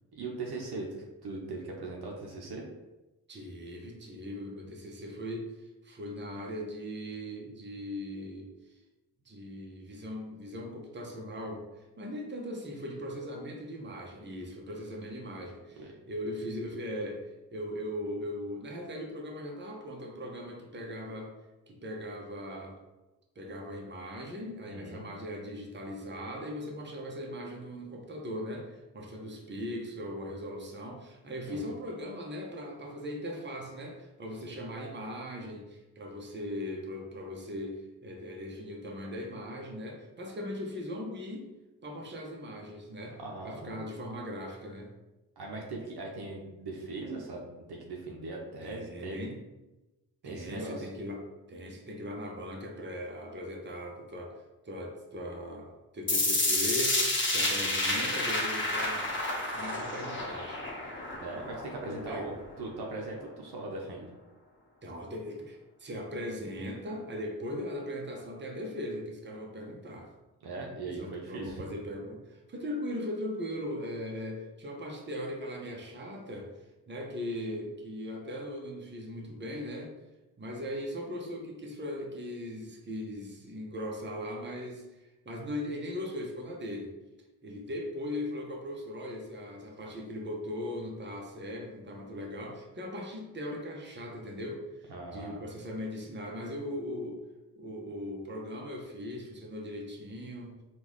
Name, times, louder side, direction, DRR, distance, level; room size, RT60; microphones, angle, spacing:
voice 1, 0.1-2.6 15.8-15.9 24.7-25.0 31.5-31.6 43.2-43.8 45.4-47.4 47.7-49.2 50.2-50.9 61.2-64.1 70.4-71.6 94.9-95.4, right 2 dB, 60° right, 0 dB, 0.8 m, -39 dB
voice 2, 3.3-8.5 9.2-17.2 17.5-21.3 21.7-22.8 23.4-41.5 41.8-44.9 48.6-49.4 50.2-51.2 51.5-59.1 59.5-61.0 61.8-62.4 64.8-70.1 70.8-76.5 76.9-79.9 80.4-86.9 87.4-97.2 97.5-100.6, left 1 dB, 25° right, 0 dB, 0.9 m, -39 dB
sound 1, 56.1-62.1, left 2 dB, 25° left, 1.0 m, -30 dB
3.6 x 2.5 x 3.1 m, 1.0 s
supercardioid pair, 45°, 43 cm